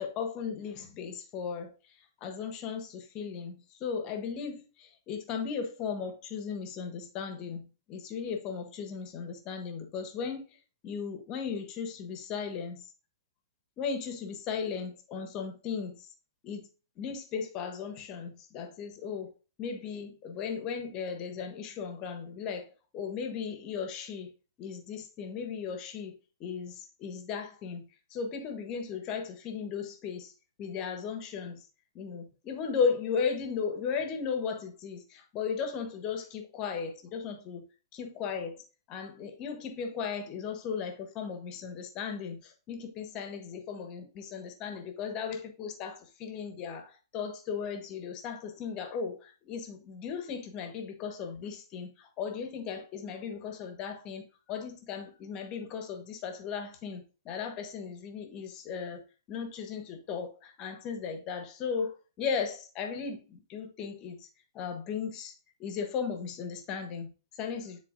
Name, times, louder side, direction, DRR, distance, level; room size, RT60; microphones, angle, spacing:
voice 1, 0.0-1.7 2.2-10.5 10.8-12.8 13.8-16.1 16.4-16.7 17.0-19.3 19.6-22.7 22.9-24.3 24.6-30.3 30.6-31.6 31.9-37.6 37.9-38.6 38.9-59.0 59.3-64.3 64.5-65.3 65.6-67.8, left 6 dB, 35° left, 1.3 m, -36 dB
9.9 x 4.1 x 2.6 m
hypercardioid pair, 115°, 2 cm